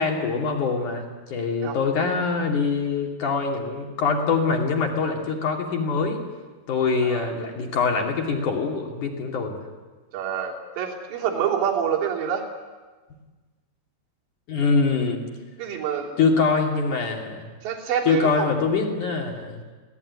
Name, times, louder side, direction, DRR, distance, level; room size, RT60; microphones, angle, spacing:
voice 1, 0.0-6.2 6.7-9.6 13.1-13.2 14.5-15.2 16.2-17.5 18.1-19.7, left 4 dB, 45° left, 1 dB, 3.7 m, -24 dB
voice 2, 7.0-7.3 10.1-12.5 15.6-16.1 17.6-18.5, right 8 dB, 65° right, 0 dB, 5.1 m, -27 dB
24.0 x 18.0 x 9.7 m, 1.3 s
omnidirectional pair, 5.6 m